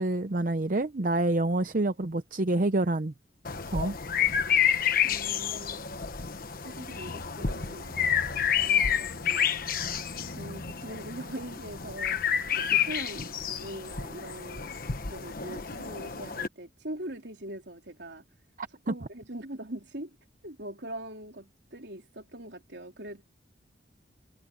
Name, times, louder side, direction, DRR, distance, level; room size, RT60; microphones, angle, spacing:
voice 1, 0.0-3.1 3.7-4.0 18.9-19.0, right 2 dB, 45° right, 0.7 m, -27 dB
sound 1, 3.4-16.5, left 8 dB, 50° left, 1.3 m, -29 dB
voice 2, 5.0-5.9 6.6-8.3 8.6-9.5 10.4-12.2 12.5-18.2 18.8-20.2 20.4-23.2, right 1 dB, 70° right, 4.1 m, -42 dB
head